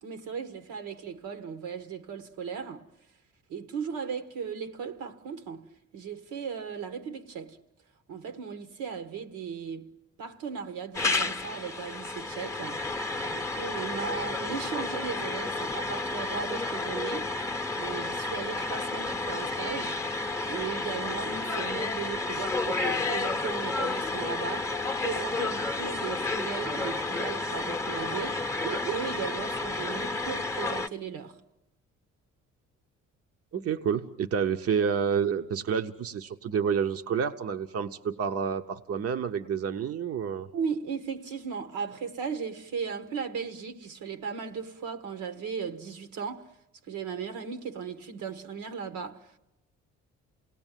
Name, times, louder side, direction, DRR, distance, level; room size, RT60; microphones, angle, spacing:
voice 1, 0.0-2.9 3.5-5.7 5.9-7.6 8.1-9.9 10.2-12.8 13.2-17.3 17.8-20.0 20.5-31.4 40.5-46.5 46.9-49.4, right 6 dB, 85° right, 1.5 m, -37 dB
sound 1, 10.9-30.9, left 3 dB, 10° left, 0.8 m, -31 dB
voice 2, 33.5-40.5, right 7 dB, 50° right, 0.9 m, -29 dB
28.5 x 18.5 x 9.1 m
cardioid pair, 90°, 30 cm